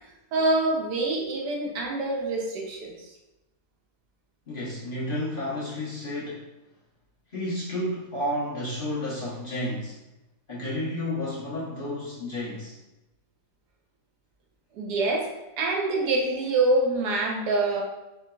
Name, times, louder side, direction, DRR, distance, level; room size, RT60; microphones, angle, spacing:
voice 1, 0.3-3.1 14.7-15.3 15.6-17.8, right 2 dB, 90° right, 0 dB, 1.3 m, -25 dB
voice 2, 4.5-6.4 7.3-10.0 10.5-12.8, left 1 dB, 40° left, -8 dB, 1.0 m, -31 dB
4.7 x 2.6 x 2.3 m, 0.97 s
omnidirectional pair, 1.7 m